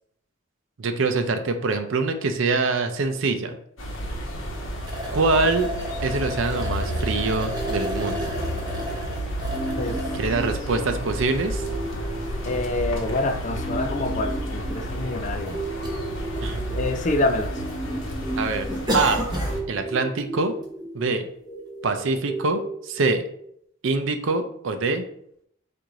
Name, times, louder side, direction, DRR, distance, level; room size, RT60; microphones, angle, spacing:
voice 1, 0.8-3.6 5.1-5.7 6.0-8.3 10.1-11.7 16.4-16.6 18.3-18.7 18.9-19.3 19.7-20.5 20.9-21.3 21.8-23.3 23.8-25.0, right 3 dB, 65° right, 8 dB, 0.5 m, -24 dB
sound 1, 3.8-19.6, equal, 70° left, 0.9 m, -31 dB
sound 2, 4.8-10.2 10.9-11.0 12.6-12.7 13.0-13.1 14.0-14.1 14.4-14.5 15.1-15.5 15.8-16.0 16.4-17.1 17.4-17.7 18.1-18.2 18.7-19.6 20.0-20.2 20.6-20.7, equal, 20° right, 0.7 m, -32 dB
sound 3, 7.5-23.4, right 2 dB, 15° left, 1.3 m, -35 dB
voice 2, 12.5-15.6 16.7-17.5, left 2 dB, 35° left, 7 dB, 0.4 m, -26 dB
4.6 x 2.6 x 3.8 m, 0.70 s
head